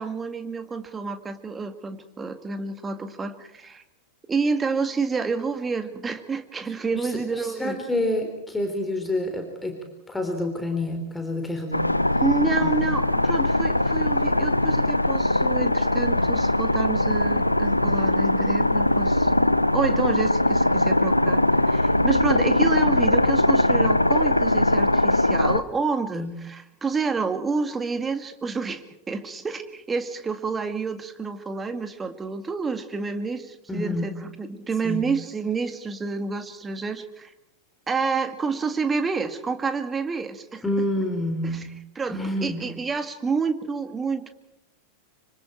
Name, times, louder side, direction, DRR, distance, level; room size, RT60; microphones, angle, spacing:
voice 1, 0.0-3.8 4.3-7.8 12.2-19.3 19.7-21.4 21.7-37.3 37.9-40.6 41.4-41.6 42.0-44.3, right 4 dB, 15° right, 9 dB, 2.0 m, -29 dB
voice 2, 6.9-12.0 12.6-12.9 26.1-26.3 33.7-34.1 34.8-35.0 40.6-41.7 42.1-42.6, left 1 dB, 10° left, 4 dB, 3.7 m, -28 dB
sound 1, 11.7-25.6, left 1 dB, 85° left, 0.7 m, -21 dB
26.5 x 25.5 x 4.5 m, 0.84 s
figure-of-eight pair, 90°, 0 cm